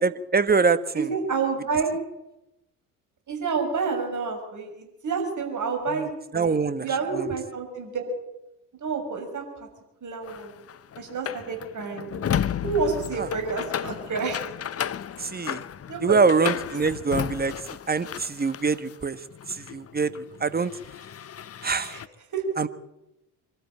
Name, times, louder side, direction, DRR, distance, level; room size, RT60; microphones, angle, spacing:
voice 1, 0.0-1.1 5.9-6.0 6.3-6.9 7.1-7.3 13.2-13.3 15.2-15.6 16.0-17.5 17.9-19.2 19.5-20.7 21.6-22.0 22.6-22.7, right 4 dB, 20° right, 14 dB, 1.4 m, -24 dB
voice 2, 0.9-1.9 3.3-8.1 8.8-9.7 10.0-10.5 11.0-12.1 12.6-14.4 15.9-16.2 21.9-22.0 22.3-22.4, right 5 dB, 40° right, 3 dB, 6.6 m, -29 dB
sound 1, 10.2-19.0 19.3-22.1, left 9 dB, 30° left, 0.9 m, -33 dB
24.5 x 13.0 x 8.9 m, 0.92 s
hypercardioid pair, 55°, 45 cm